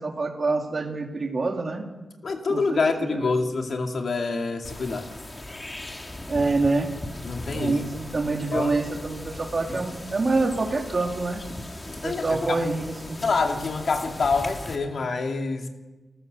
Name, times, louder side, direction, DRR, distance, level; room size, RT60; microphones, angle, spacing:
voice 1, 0.0-1.8 2.5-3.3 6.3-6.9 7.5-11.4 12.0-13.2, right 3 dB, 40° right, 2 dB, 3.0 m, -26 dB
voice 2, 2.2-5.1 7.2-7.8 8.5-8.7 12.0-12.7 13.2-15.7, left 4 dB, 60° left, 4 dB, 2.5 m, -26 dB
sound 1, 4.6-14.8, left 1 dB, 25° left, 2.1 m, -38 dB
29.0 x 14.0 x 6.8 m, 1.2 s
wide cardioid pair, 115°, 0 cm